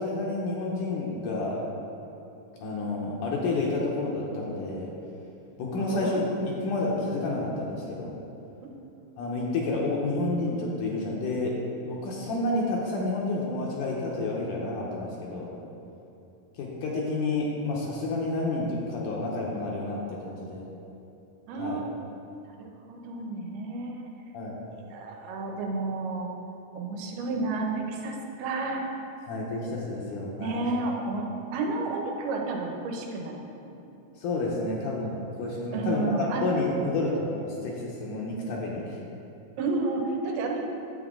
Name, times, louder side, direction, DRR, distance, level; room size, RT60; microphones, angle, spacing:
voice 1, 0.0-1.7 2.6-4.9 5.6-6.2 6.6-8.2 9.2-11.6 11.9-15.5 16.6-20.7 21.6-21.8 24.3-24.6 29.3-30.6 34.2-36.0 36.4-39.0, left 2 dB, 70° left, -3 dB, 2.2 m, -30 dB
voice 2, 5.8-6.3 21.5-22.0 22.4-24.1 24.9-26.3 26.7-28.8 30.4-31.2 31.5-33.7 35.7-36.5 39.6-40.6, right 3 dB, 90° right, 1 dB, 2.9 m, -31 dB
9.0 x 8.2 x 3.7 m, 2.9 s
omnidirectional pair, 4.4 m